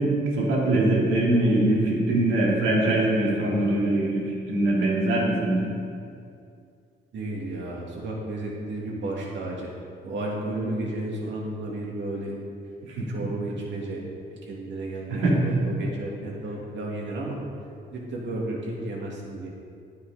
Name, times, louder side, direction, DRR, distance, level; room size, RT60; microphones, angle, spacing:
voice 1, 0.0-5.7 12.9-13.0 15.1-15.4, right 1 dB, 85° right, -4 dB, 2.8 m, -22 dB
voice 2, 7.1-9.7 10.0-12.3 13.1-14.0 14.4-17.4 17.9-19.5, right 2 dB, 65° right, -3 dB, 2.6 m, -32 dB
10.0 x 8.2 x 5.1 m, 2.4 s
cardioid pair, 90°, 20 cm